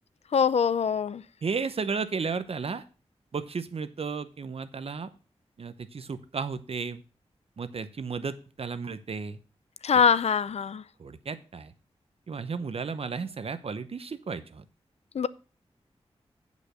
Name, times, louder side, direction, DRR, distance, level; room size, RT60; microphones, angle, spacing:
voice 1, 0.3-1.2 9.8-10.8 15.1-15.3, left 7 dB, 75° left, 0.5 m, -23 dB
voice 2, 1.4-2.8 3.3-5.1 5.6-7.0 7.6-9.4 11.0-11.7 12.3-14.6, right 5 dB, 65° right, 0.8 m, -33 dB
8.8 x 5.2 x 6.3 m
wide cardioid pair, 90°, 11 cm